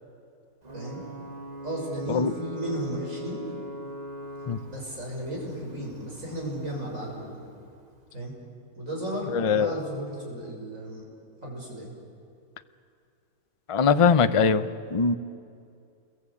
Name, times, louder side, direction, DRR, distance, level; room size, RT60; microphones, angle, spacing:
Ocean / Boat Water vehicle / Alarm, 0.6-8.2, equal, 30° right, 1.3 m, -42 dB
voice 1, 1.6-3.4 4.7-7.4 8.1-8.3 8.7-11.0 11.4-11.9, right 1 dB, 60° right, -2 dB, 6.9 m, -34 dB
voice 2, 9.3-9.7 13.7-15.1, left 5 dB, 35° left, 11 dB, 0.6 m, -21 dB
28.5 x 22.5 x 8.6 m, 2.4 s
omnidirectional pair, 1.6 m